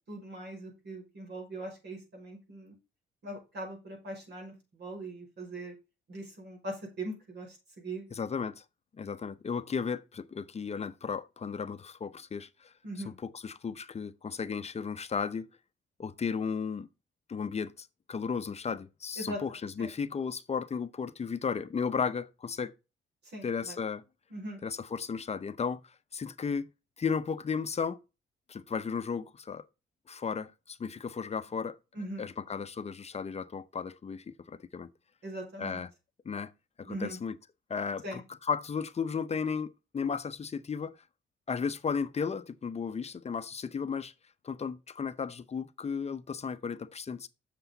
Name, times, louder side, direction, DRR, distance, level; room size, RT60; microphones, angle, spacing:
voice 1, 0.0-2.7 3.2-5.7 6.1-8.0 12.8-13.1 19.2-19.4 19.8-19.9 23.2-23.8 24.3-24.6 31.9-32.3 35.2-35.8 36.9-37.2 38.0-38.2, right 1 dB, 60° right, 5.6 m, -41 dB
voice 2, 8.1-8.6 8.9-12.7 13.0-15.5 16.0-16.9 17.3-22.7 23.4-24.0 24.6-26.7 27.0-28.0 28.5-29.7 30.1-31.8 32.2-34.9 35.6-35.9 36.2-36.5 36.8-37.3 37.7-41.0 41.5-44.1 44.4-47.3, left 6 dB, 35° left, 0.7 m, -34 dB
7.9 x 6.8 x 4.0 m
cardioid pair, 90°, 20 cm